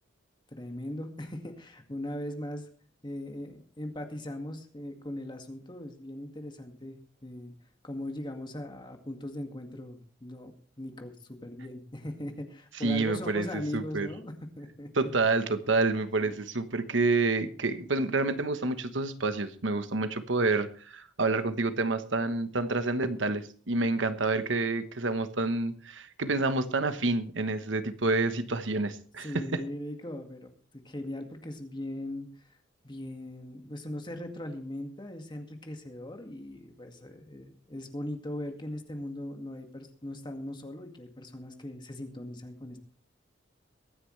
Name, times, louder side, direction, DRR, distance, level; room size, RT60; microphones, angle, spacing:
voice 1, 0.5-2.7 3.0-7.0 7.2-7.5 7.8-11.2 11.4-15.1 16.2-16.4 29.2-32.4 32.8-42.8, left 1 dB, 25° left, 4 dB, 2.1 m, -39 dB
voice 2, 12.8-14.1 14.9-29.6, right 3 dB, 70° right, 10 dB, 1.2 m, -28 dB
23.0 x 9.8 x 3.3 m, 0.43 s
head